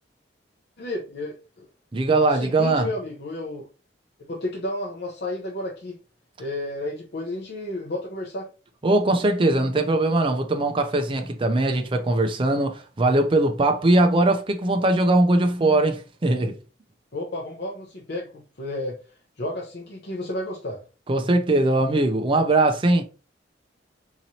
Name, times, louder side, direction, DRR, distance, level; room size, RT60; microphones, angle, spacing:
voice 1, 0.8-1.7 2.2-3.7 4.2-6.0 6.4-8.5 17.1-19.0 19.4-20.8, left 1 dB, 60° left, 0.7 m, -32 dB
voice 2, 1.9-2.9 8.8-16.5 21.1-23.0, right 2 dB, 30° right, 0.5 m, -21 dB
4.0 x 3.0 x 2.7 m
head